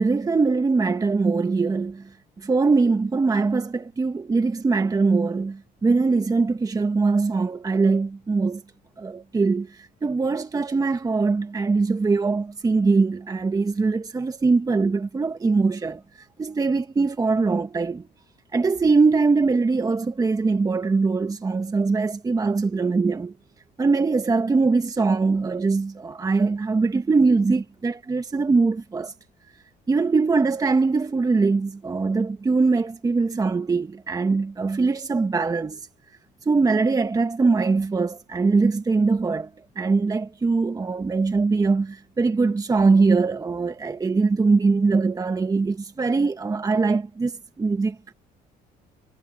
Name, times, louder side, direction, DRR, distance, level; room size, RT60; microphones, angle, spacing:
voice 1, 0.0-8.6 9.0-16.0 16.4-18.1 18.5-23.3 23.8-29.1 29.9-35.8 36.4-39.5 39.8-48.1, right 4 dB, 20° right, 1.2 m, -22 dB
cardioid pair, 110°, 17 cm